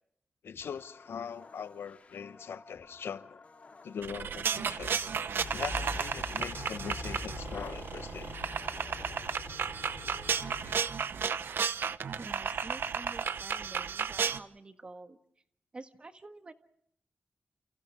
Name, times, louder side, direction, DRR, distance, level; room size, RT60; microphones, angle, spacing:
voice 1, 0.4-3.4 3.8-5.1 5.5-8.3, left 7 dB, 80° left, 1.0 m, -41 dB
sound 1, 0.5-9.3, left 3 dB, 35° left, 3.4 m, -56 dB
sound 2, 4.0-14.4, right 6 dB, 65° right, 0.8 m, -33 dB
sound 3, 5.4-10.8, left 4 dB, 55° left, 3.9 m, -43 dB
voice 2, 12.2-15.2 15.7-16.5, right 3 dB, 25° right, 1.6 m, -48 dB
30.0 x 29.5 x 3.6 m
wide cardioid pair, 165°, 4 cm